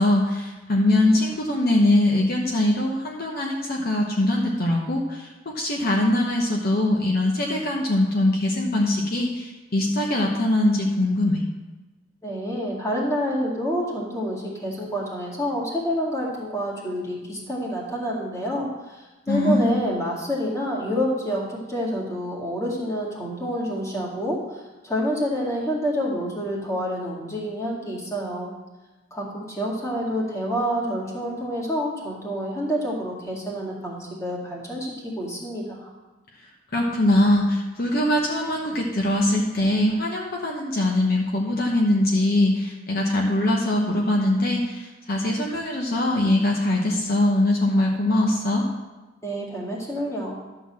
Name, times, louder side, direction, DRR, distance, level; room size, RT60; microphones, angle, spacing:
voice 1, 0.0-11.4 19.3-19.8 36.7-48.6, left 1 dB, 50° left, -1 dB, 1.0 m, -22 dB
voice 2, 12.2-28.5 29.1-35.9 49.2-50.4, equal, 15° left, -4 dB, 2.1 m, -28 dB
11.5 x 4.0 x 7.4 m, 1.1 s
head